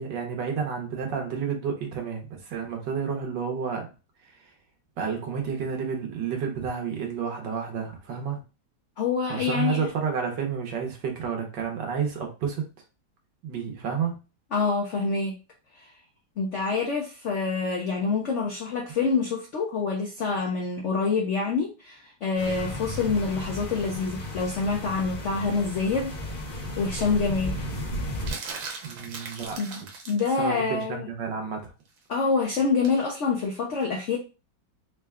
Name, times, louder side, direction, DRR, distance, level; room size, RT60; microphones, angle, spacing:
voice 1, 0.0-3.9 4.2-4.5 5.0-8.4 9.3-12.7 13.4-14.2 28.8-29.9 30.4-31.7, right 6 dB, 70° right, 1.5 m, -30 dB
voice 2, 9.0-9.9 14.5-15.4 15.8-15.9 16.4-26.1 26.8-27.5 29.6-29.8 30.1-31.1 32.1-34.2, left 4 dB, 85° left, 0.6 m, -26 dB
sound 1, 22.4-28.3, left 1 dB, 40° left, 0.8 m, -34 dB
sound 2, 28.3-30.3 32.8-33.0, right 4 dB, 90° right, 1.6 m, -38 dB
3.8 x 2.2 x 3.5 m
omnidirectional pair, 2.1 m